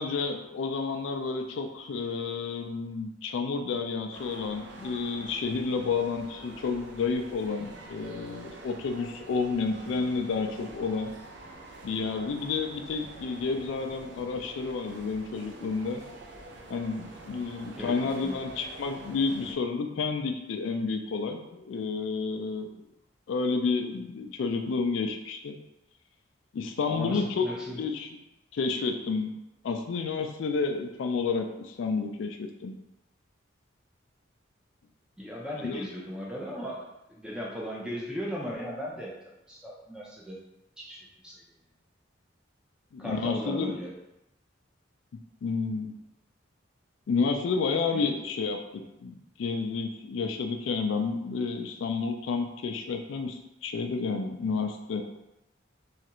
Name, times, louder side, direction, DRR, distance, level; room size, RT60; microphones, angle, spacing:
voice 1, 0.0-11.1 11.8-16.0 16.7-22.9 23.3-25.6 26.5-27.5 27.8-28.1 28.5-29.4 29.6-32.7 35.6-35.8 42.9-43.7 45.4-45.9 47.1-55.0, left 4 dB, 75° left, 4 dB, 0.3 m, -30 dB
sound 1, 4.1-19.5, right 2 dB, 65° right, 0.5 m, -47 dB
voice 2, 17.8-18.4 26.9-27.8 35.2-39.1 39.5-40.4 40.8-41.0 41.2-41.4 43.0-43.9 47.9-48.1, equal, 5° right, -4 dB, 0.5 m, -37 dB
3.1 x 2.4 x 2.9 m, 0.92 s
head